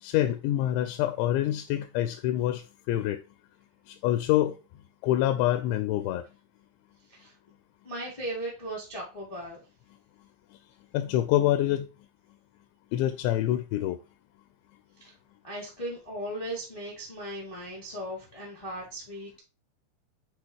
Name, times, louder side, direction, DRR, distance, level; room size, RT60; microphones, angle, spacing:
voice 1, 0.0-2.6 2.9-3.2 3.9-4.6 5.0-6.2 10.9-11.9 12.9-14.0, left 13 dB, 85° left, 2.7 m, -26 dB
voice 2, 7.8-9.6 15.0-15.1 15.4-19.4, right 1 dB, 20° left, 0.9 m, -37 dB
8.7 x 4.3 x 3.0 m
omnidirectional pair, 5.4 m